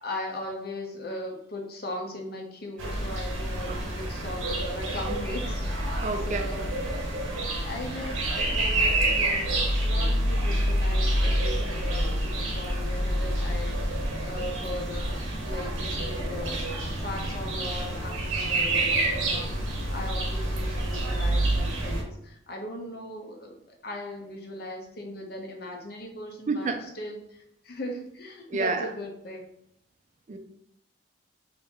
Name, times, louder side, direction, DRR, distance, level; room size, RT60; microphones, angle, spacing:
voice 1, 0.0-6.7 7.6-29.4, left 1 dB, 50° left, 2 dB, 0.6 m, -38 dB
sound 1, 2.8-22.0, right 1 dB, 85° right, 0.8 m, -28 dB
voice 2, 6.0-6.5 26.5-26.8 28.5-28.9 30.3-30.4, right 4 dB, 35° right, 6 dB, 0.4 m, -29 dB
2.8 x 2.6 x 4.3 m, 0.74 s
head